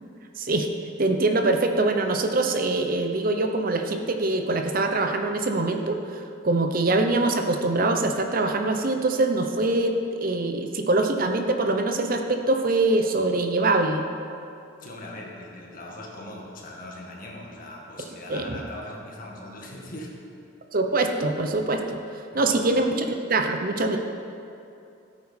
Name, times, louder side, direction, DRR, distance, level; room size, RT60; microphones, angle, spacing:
voice 1, 0.4-0.7 1.0-14.1 18.3-18.5 20.7-22.0 22.3-23.0 23.3-24.0, right 2 dB, 45° right, 5 dB, 0.8 m, -24 dB
voice 2, 14.8-20.1 22.3-22.8, left 1 dB, 45° left, -2 dB, 1.9 m, -40 dB
15.5 x 8.7 x 4.4 m, 2.6 s
head